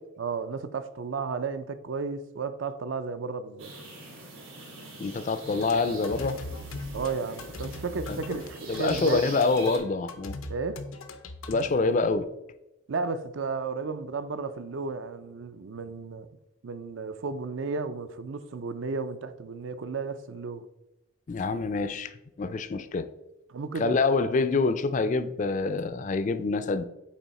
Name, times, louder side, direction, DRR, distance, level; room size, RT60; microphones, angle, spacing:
voice 1, 0.2-3.7 6.8-9.3 10.5-10.8 12.9-16.3 16.6-20.7 23.5-24.0, right 4 dB, 70° right, 0.5 m, -33 dB
sound 1, 3.6-9.8, right 2 dB, 90° right, 2.5 m, -43 dB
voice 2, 5.0-6.4 8.1-8.2 8.7-10.4 11.5-12.3 21.3-22.1 22.4-23.1 23.8-26.9, left 3 dB, 40° left, 0.3 m, -26 dB
sound 2, 5.4-11.6, left 2 dB, 90° left, 0.7 m, -40 dB
8.3 x 3.5 x 4.1 m
head